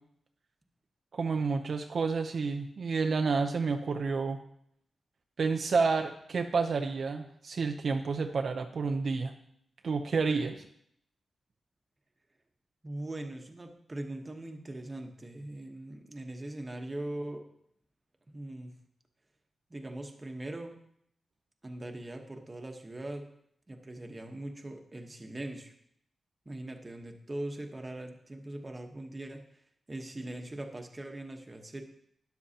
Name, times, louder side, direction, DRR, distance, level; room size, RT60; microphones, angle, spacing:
voice 1, 1.1-4.4 5.4-9.3 9.8-10.7, right 4 dB, 55° right, 4 dB, 0.6 m, -30 dB
voice 2, 12.8-17.4 18.3-18.7 19.7-20.8 21.6-23.3 23.7-25.7 26.4-29.4 29.9-31.8, right 1 dB, 20° right, 4 dB, 1.1 m, -41 dB
12.5 x 10.5 x 2.8 m, 0.71 s
wide cardioid pair, 145°, 0 cm